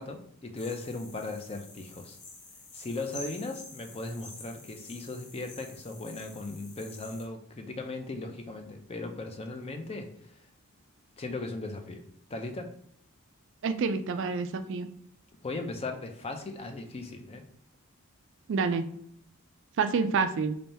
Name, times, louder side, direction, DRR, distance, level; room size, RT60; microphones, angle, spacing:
voice 1, 0.0-2.2 2.7-10.1 11.2-12.0 12.3-12.7 15.4-17.4, left 2 dB, 25° left, 5 dB, 0.4 m, -37 dB
sound 1, 0.5-7.2, left 3 dB, 85° left, 1.0 m, -48 dB
voice 2, 13.6-14.9 18.5-18.8 19.8-20.5, right 5 dB, 55° right, 10 dB, 0.3 m, -28 dB
3.4 x 2.6 x 4.1 m, 0.67 s
head